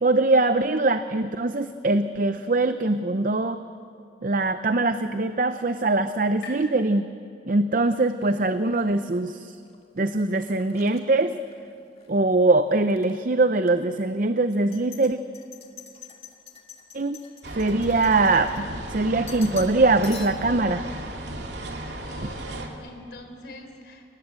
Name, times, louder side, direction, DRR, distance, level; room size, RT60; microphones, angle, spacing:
voice 1, 0.0-3.6 4.2-7.1 7.5-9.5 10.0-11.4 12.1-15.2 16.9-17.2 17.6-20.8, right 2 dB, 50° right, 10 dB, 0.7 m, -22 dB
sound 1, 4.1-7.8, left 3 dB, 80° left, 7.2 m, -49 dB
sound 2, 8.2-12.2 12.5-13.1 13.6-13.7 14.5-18.9 19.3-19.8 20.0-20.6, left 7 dB, 35° left, 2.1 m, -47 dB
sound 3, 17.4-22.7, right 1 dB, 70° right, 2.6 m, -35 dB
voice 2, 22.0-24.0, left 1 dB, 60° left, 5 dB, 3.9 m, -43 dB
28.5 x 19.5 x 8.1 m, 2.4 s
head